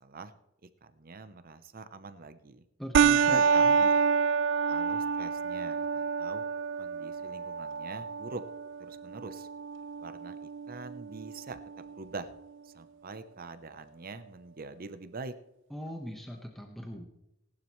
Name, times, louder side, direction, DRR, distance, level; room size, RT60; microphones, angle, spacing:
voice 1, 0.0-0.3 0.8-2.6 3.3-3.9 4.7-6.4 6.8-8.4 8.8-9.5 10.0-12.3 12.6-15.3, right 3 dB, 45° right, 11 dB, 0.8 m, -44 dB
voice 2, 2.8-3.8 15.7-17.1, equal, ahead, 1 dB, 1.3 m, -41 dB
sound 1, 2.9-11.9, right 6 dB, 60° right, 0.4 m, -28 dB
19.0 x 11.5 x 3.2 m, 0.85 s
head